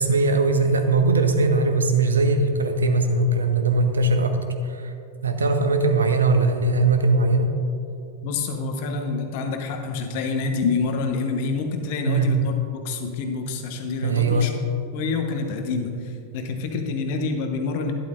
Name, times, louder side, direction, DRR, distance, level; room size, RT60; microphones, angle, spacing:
voice 1, 0.0-4.4 4.6-4.9 5.2-7.5 12.1-12.4 14.0-14.5, right 3 dB, 70° right, 7 dB, 0.8 m, -20 dB
voice 2, 8.2-12.5 12.8-14.5 14.9-17.9, left 4 dB, 50° left, 4 dB, 1.1 m, -27 dB
11.5 x 11.5 x 2.5 m, 2.7 s
figure-of-eight pair, 90°, 0 cm